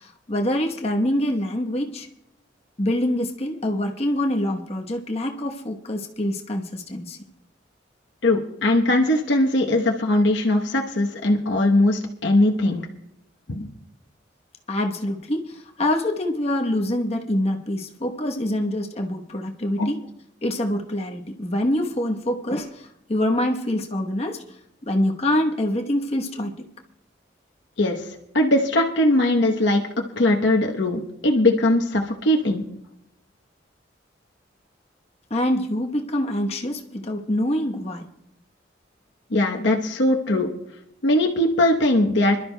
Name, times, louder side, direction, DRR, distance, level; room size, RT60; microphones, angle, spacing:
voice 1, 0.0-2.1 2.8-7.2 14.7-20.0 20.4-24.4 24.8-26.7 35.3-38.0, left 1 dB, 35° left, 3 dB, 1.0 m, -25 dB
voice 2, 8.2-12.9 13.5-13.7 19.8-19.9 27.8-29.8 30.2-32.6 39.3-40.5 41.0-42.4, left 1 dB, 75° left, 1 dB, 1.0 m, -20 dB
26.0 x 12.0 x 2.2 m, 0.80 s
head